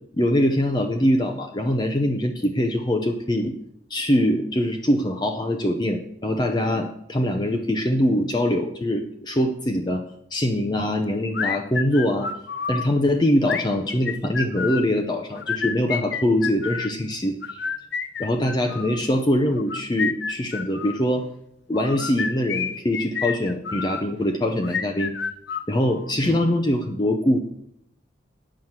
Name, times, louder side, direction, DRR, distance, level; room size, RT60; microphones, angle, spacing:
voice 1, 0.2-3.5 3.9-10.0 10.3-12.3 12.7-17.6 18.2-21.3 21.7-25.1 25.7-27.4, left 1 dB, 25° left, 4 dB, 0.7 m, -23 dB
sound 1, 11.3-12.9 13.4-14.9 15.4-16.9 17.4-19.0 19.6-21.0 21.7-24.1 24.6-26.1, left 6 dB, 65° left, 0.7 m, -29 dB
9.6 x 6.2 x 7.3 m, 0.74 s
head